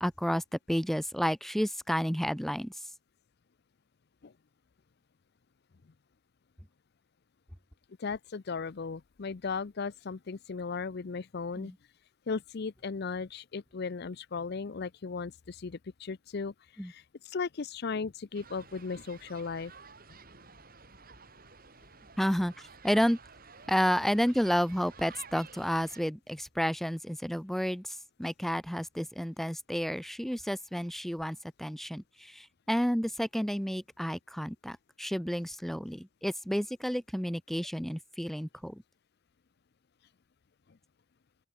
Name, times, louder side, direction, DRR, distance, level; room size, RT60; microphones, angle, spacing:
voice 1, 0.0-2.7 11.6-11.7 16.8-16.9 22.2-23.2 23.7-38.8, equal, ahead, 1.0 m, -31 dB
voice 2, 8.0-11.7 12.3-19.7, left 4 dB, 50° left, 0.5 m, -36 dB
sound 1, 18.3-26.0, right 4 dB, 45° right, 6.6 m, -52 dB
open air
head